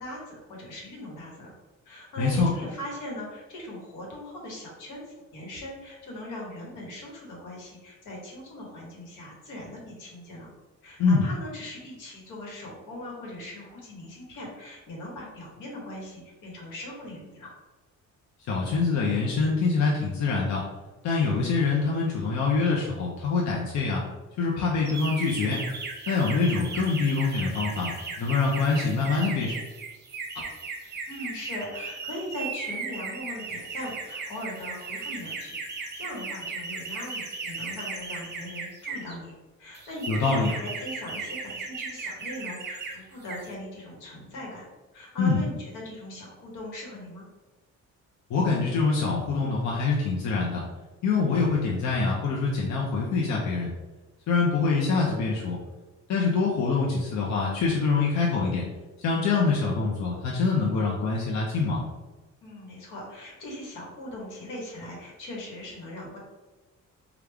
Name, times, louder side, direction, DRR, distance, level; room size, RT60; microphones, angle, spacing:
voice 1, 0.0-1.5 1.8-10.5 10.8-17.5 30.8-39.3 39.6-44.7 44.9-47.2 62.4-66.2, left 1 dB, 90° left, -3 dB, 1.2 m, -40 dB
voice 2, 2.2-2.5 11.0-11.3 18.5-20.6 21.0-24.0 24.4-25.6 26.1-27.9 28.2-29.6 30.3-30.4 40.1-40.5 45.2-45.4 48.3-50.6 51.0-53.7 54.3-55.6 56.1-58.6 59.0-61.8, left 4 dB, 65° left, -3 dB, 0.7 m, -25 dB
sound 1, 24.9-39.1 39.7-42.9 43.2-43.5, right 4 dB, 35° right, 0.7 m, -36 dB
3.5 x 2.3 x 3.3 m, 1.2 s
cardioid pair, 90°, 30 cm